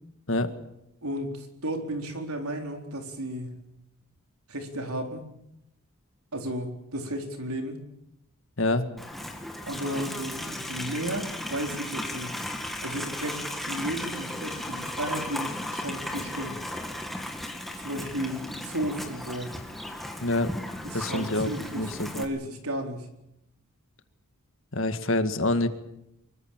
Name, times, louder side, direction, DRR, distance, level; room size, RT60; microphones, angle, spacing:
voice 1, 1.0-3.5 4.5-5.2 6.3-7.8 9.7-12.4 12.8-16.6 17.7-19.5 20.8-23.1, right 1 dB, 80° right, 4 dB, 4.2 m, -34 dB
Livestock farm animals working animals, 9.0-22.2, left 1 dB, ahead, 2.3 m, -35 dB
voice 2, 20.2-20.5 20.9-22.2 24.7-25.7, left 2 dB, 60° left, 9 dB, 1.9 m, -26 dB
24.5 x 22.5 x 7.4 m, 0.83 s
head